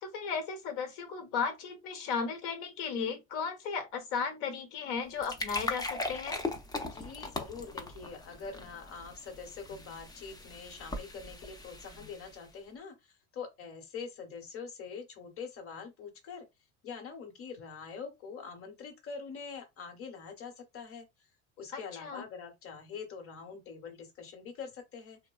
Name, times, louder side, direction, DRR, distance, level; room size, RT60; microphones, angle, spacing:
voice 1, 0.0-6.4 21.7-22.2, left 5 dB, 75° left, 1.1 m, -35 dB
sound 1, 5.0-12.5, left 2 dB, 10° left, 0.4 m, -40 dB
voice 2, 6.9-16.4 16.8-21.1 21.6-25.2, left 5 dB, 40° left, 1.0 m, -44 dB
2.8 x 2.1 x 2.3 m
supercardioid pair, 100°, 35 cm